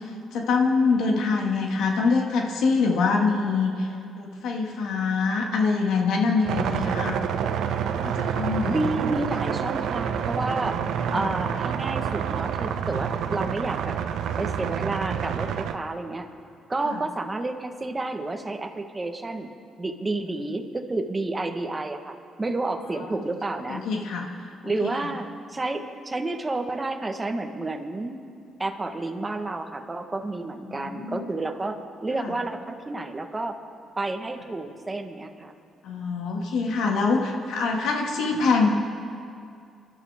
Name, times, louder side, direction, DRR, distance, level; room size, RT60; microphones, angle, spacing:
voice 1, 0.3-3.9 4.2-7.2 8.0-8.8 10.8-11.3 16.9-17.0 23.7-24.3 30.7-31.2 35.8-38.7, left 4 dB, 80° left, 1 dB, 1.9 m, -24 dB
sound 1, 6.4-15.8, right 8 dB, 80° right, 0.7 m, -28 dB
voice 2, 8.7-10.8 11.1-14.0 14.4-16.3 16.7-19.5 19.8-23.8 24.6-28.2 28.6-33.6 34.0-35.5, right 2 dB, 20° right, 5 dB, 1.3 m, -30 dB
27.5 x 11.5 x 3.6 m, 2.4 s
cardioid pair, 90°, 0 cm